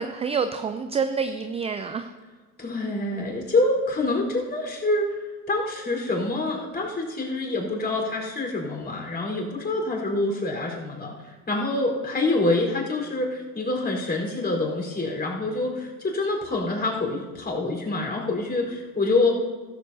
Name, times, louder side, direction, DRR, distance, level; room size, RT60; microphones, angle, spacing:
voice 1, 0.0-2.1, right 5 dB, 15° right, 9 dB, 0.4 m, -27 dB
voice 2, 2.6-5.1 5.5-11.1 11.5-19.3, left 2 dB, 20° left, 0 dB, 4.3 m, -26 dB
15.5 x 14.0 x 2.8 m, 1.3 s
hypercardioid pair, 80°, 49 cm